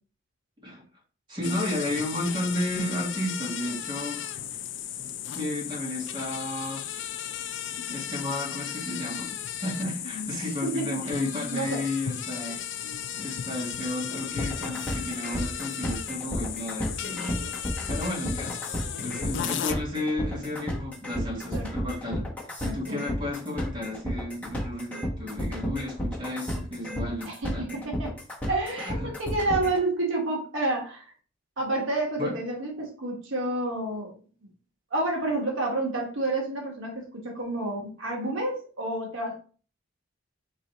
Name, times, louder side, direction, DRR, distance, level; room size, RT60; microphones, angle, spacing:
voice 1, 1.3-4.3 5.3-6.9 7.9-9.4 9.6-12.6 13.2-17.5 17.9-18.6 19.0-22.3 22.6-27.7 28.8-29.1 32.2-32.4, left 1 dB, 25° right, -5 dB, 1.9 m, -32 dB
sound 1, 1.4-19.7, left 9 dB, 65° left, 0.4 m, -35 dB
voice 2, 10.6-11.8 21.5-21.7 22.6-23.0 27.2-28.1 28.5-31.1 31.6-34.2 34.9-39.4, right 2 dB, 80° right, -1 dB, 1.4 m, -29 dB
sound 2, 14.4-29.8, equal, 10° left, 1.1 m, -32 dB
3.8 x 3.2 x 4.1 m, 0.39 s
head